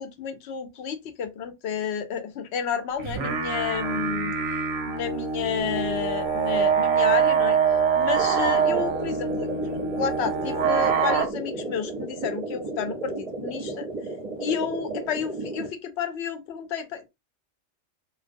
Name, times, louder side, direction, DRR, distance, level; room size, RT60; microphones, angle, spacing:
voice 1, 0.0-4.6 4.9-7.6 7.9-13.9 14.4-17.1, left 7 dB, 70° left, 0.8 m, -31 dB
sound 1, 3.0-11.3, right 6 dB, 85° right, 0.9 m, -24 dB
sound 2, 8.2-15.7, right 2 dB, 40° right, 0.6 m, -34 dB
2.2 x 2.2 x 2.5 m
omnidirectional pair, 1.2 m